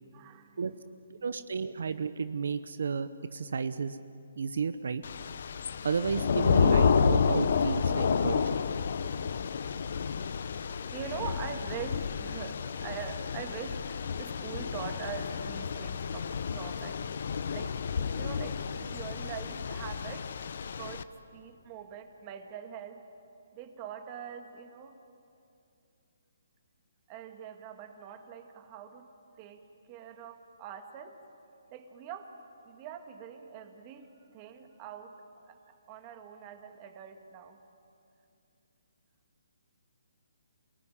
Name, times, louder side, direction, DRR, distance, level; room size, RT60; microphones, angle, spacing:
voice 1, 0.1-0.6 10.9-17.1 17.5-23.0 23.5-25.0 27.1-29.1 29.4-31.2 31.7-32.3 32.7-35.2 35.5-35.6 35.9-37.6, right 7 dB, 25° right, 6 dB, 1.8 m, -43 dB
voice 2, 1.2-4.0 4.4-5.0 5.8-8.6, right 5 dB, 70° right, 12 dB, 0.9 m, -32 dB
Thunder / Rain, 5.0-21.0, left 6 dB, 55° left, 0.9 m, -30 dB
28.0 x 19.0 x 10.0 m, 2.7 s
hypercardioid pair, 165°, 0 cm